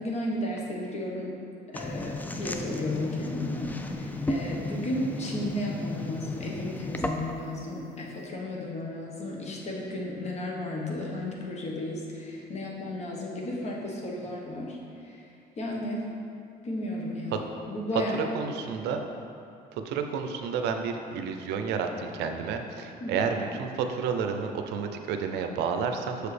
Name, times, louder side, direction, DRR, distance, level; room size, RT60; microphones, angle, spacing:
voice 1, 0.0-1.3 1.7-15.2 15.6-16.0 16.6-18.7 23.0-23.3, left 1 dB, 40° left, -2 dB, 1.2 m, -34 dB
sound 1, 1.7-7.5, left 2 dB, 10° left, 0.3 m, -34 dB
voice 2, 18.1-19.0 19.7-26.3, right 6 dB, 80° right, 5 dB, 0.5 m, -30 dB
6.5 x 4.9 x 3.3 m, 2.5 s
cardioid pair, 110°, 17 cm